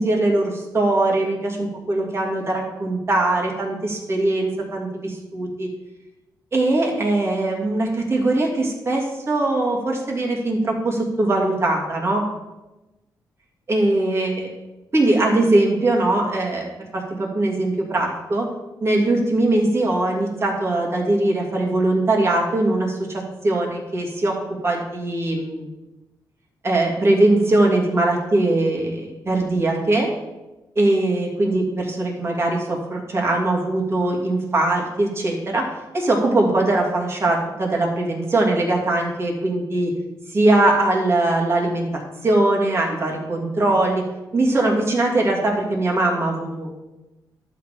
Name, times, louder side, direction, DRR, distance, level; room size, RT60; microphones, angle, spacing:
voice 1, 0.0-5.7 6.5-12.2 13.7-14.5 14.9-18.5 18.8-24.3 24.6-25.7 26.6-30.1 30.8-35.6 35.9-39.9 40.3-44.0 44.3-46.9, right 2 dB, 35° right, -1 dB, 2.7 m, -21 dB
11.5 x 6.8 x 5.1 m, 1.0 s
cardioid pair, 100°, 8 cm